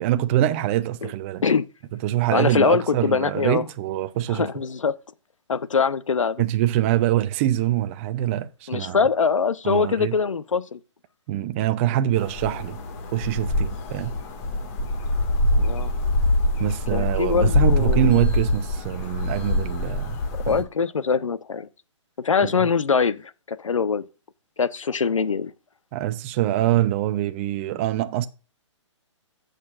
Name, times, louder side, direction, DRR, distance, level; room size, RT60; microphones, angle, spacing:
voice 1, 0.0-1.4 2.0-4.5 6.4-9.1 9.6-10.1 11.3-12.8 13.1-14.1 16.6-20.2 20.5-20.6 22.4-22.5 25.9-28.3, right 13 dB, 25° right, 0.6 m, -24 dB
voice 2, 2.3-3.6 4.3-4.9 5.5-6.4 8.7-10.8 15.6-15.9 16.9-18.2 20.3-21.7 22.2-24.0 24.6-25.5, left 5 dB, 85° left, 1.0 m, -23 dB
sound 1, 12.1-20.6, left 1 dB, 30° left, 2.0 m, -24 dB
15.0 x 6.6 x 2.5 m
hypercardioid pair, 150°, 16 cm